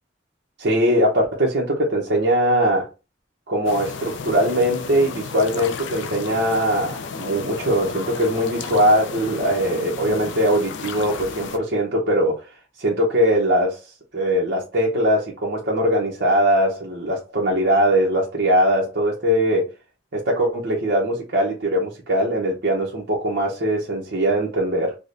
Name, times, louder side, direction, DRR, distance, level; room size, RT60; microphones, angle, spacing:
voice 1, 0.6-2.9 3.5-12.4 12.8-13.8 14.1-19.7 20.1-25.0, equal, 60° right, 0.8 m, -21 dB
sound 1, 3.7-11.6, left 5 dB, 70° left, 0.4 m, -33 dB
4.8 x 2.1 x 2.5 m
head